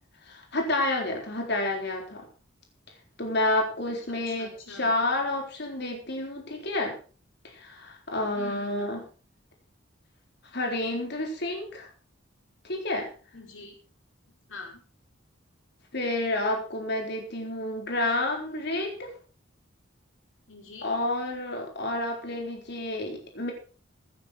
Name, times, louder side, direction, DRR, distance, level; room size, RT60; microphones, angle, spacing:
voice 1, 0.3-2.2 3.2-7.0 7.5-9.0 10.5-11.9 12.6-13.1 15.9-19.1 20.8-23.5, left 2 dB, 55° left, 2 dB, 4.1 m, -29 dB
voice 2, 4.1-4.9 8.3-9.0 13.3-13.8 14.5-14.8 20.5-20.9, left 3 dB, 85° left, 2 dB, 5.1 m, -45 dB
16.5 x 10.0 x 4.5 m, 0.37 s
head